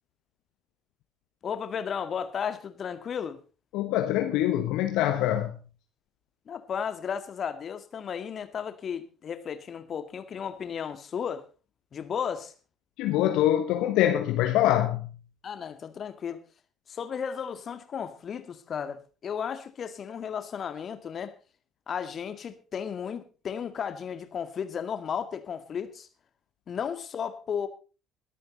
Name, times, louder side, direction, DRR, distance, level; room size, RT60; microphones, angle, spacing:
voice 1, 1.4-3.4 6.5-11.4 11.9-12.5 15.4-16.4 16.9-21.3 21.9-26.1 26.7-27.7, left 7 dB, 40° left, 1.9 m, -34 dB
voice 2, 3.7-5.6 13.0-15.1, left 12 dB, 60° left, 1.1 m, -24 dB
21.5 x 9.1 x 4.0 m
figure-of-eight pair, 50°, 0 cm